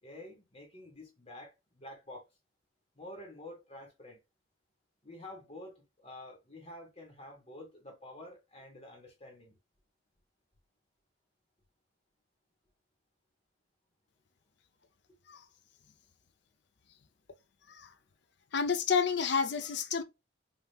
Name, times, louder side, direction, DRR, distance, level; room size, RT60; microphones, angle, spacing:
voice 1, 0.0-2.3 2.9-4.2 5.0-9.6, left 1 dB, 30° left, 1.5 m, -49 dB
voice 2, 18.5-20.0, left 6 dB, 55° left, 0.5 m, -30 dB
5.6 x 2.8 x 2.3 m
head